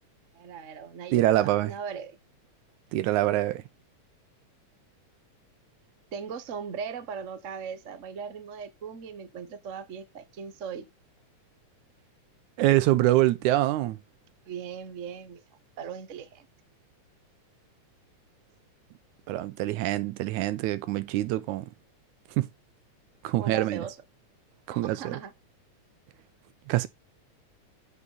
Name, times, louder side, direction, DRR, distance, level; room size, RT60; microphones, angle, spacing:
voice 1, 0.3-2.2 6.1-10.9 14.5-15.4 15.8-16.4 23.4-24.0 24.7-25.3, right 6 dB, 55° right, 0.8 m, -39 dB
voice 2, 1.1-1.7 2.9-3.6 12.6-14.0 19.3-21.7 22.4-22.5 23.2-23.9 24.8-25.2 26.7-26.9, right 15 dB, 85° right, 2.1 m, -25 dB
8.4 x 6.8 x 4.0 m
omnidirectional pair, 3.4 m